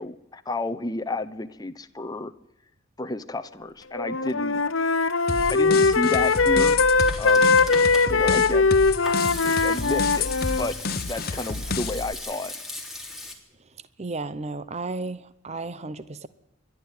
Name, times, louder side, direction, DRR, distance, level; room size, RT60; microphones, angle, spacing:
voice 1, 0.0-2.3 3.0-4.6 5.5-6.8 7.2-7.6 8.1-8.7 9.4-10.3 10.6-10.7 11.1-12.5, left 2 dB, 20° left, 8 dB, 0.9 m, -31 dB
Wind instrument woodwind instrument, 3.9-10.7, left 4 dB, 75° left, 0.9 m, -21 dB
sound 1, 5.3-12.1, left 4 dB, 50° left, 1.1 m, -31 dB
Hands / Sink (filling or washing), 7.0-13.3, left 2 dB, ahead, 3.4 m, -38 dB
voice 2, 14.0-16.3, right 3 dB, 35° right, 15 dB, 0.8 m, -33 dB
28.5 x 12.0 x 9.6 m, 0.88 s
head